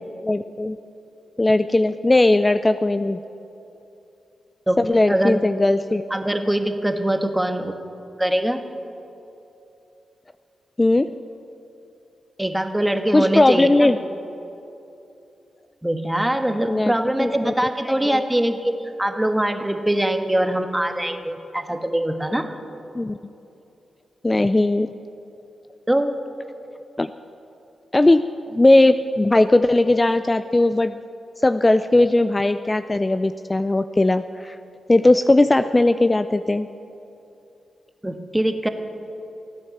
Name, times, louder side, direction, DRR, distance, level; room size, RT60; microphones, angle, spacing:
voice 1, 0.2-0.8 1.4-3.2 4.8-6.0 10.8-11.1 13.1-14.0 16.7-17.5 17.9-18.2 23.0-23.2 24.2-24.9 27.0-27.1 27.9-31.0 31.4-34.6 34.9-36.7, left 2 dB, 25° left, 11 dB, 0.4 m, -18 dB
voice 2, 4.7-5.4 6.1-7.7 8.2-8.6 12.4-13.9 15.8-22.5 25.9-26.2 38.0-38.7, right 1 dB, 10° right, 7 dB, 1.4 m, -23 dB
16.5 x 9.5 x 7.1 m, 2.8 s
supercardioid pair, 40°, 0 cm